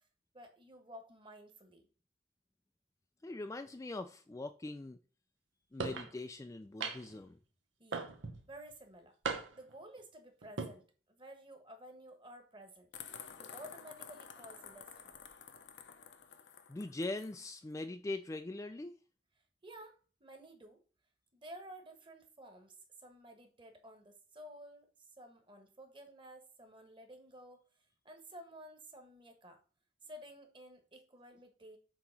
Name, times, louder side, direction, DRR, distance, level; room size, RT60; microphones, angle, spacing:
voice 1, 0.3-1.9 7.8-8.1 8.5-9.2 9.6-12.9 13.4-15.2 19.6-20.8 21.3-27.7 28.0-29.6 30.0-31.8, right 1 dB, 25° right, 5 dB, 1.3 m, -53 dB
voice 2, 3.2-5.0 5.7-7.4 16.7-18.9, left 2 dB, 15° left, 7 dB, 0.3 m, -42 dB
sound 1, 5.8-6.1 6.8-7.2 7.9-8.4 9.2-9.7 10.4-10.7, right 4 dB, 85° right, 1.0 m, -38 dB
sound 2, 12.9-17.3, left 7 dB, 70° left, 0.8 m, -51 dB
7.6 x 3.0 x 5.9 m, 0.38 s
head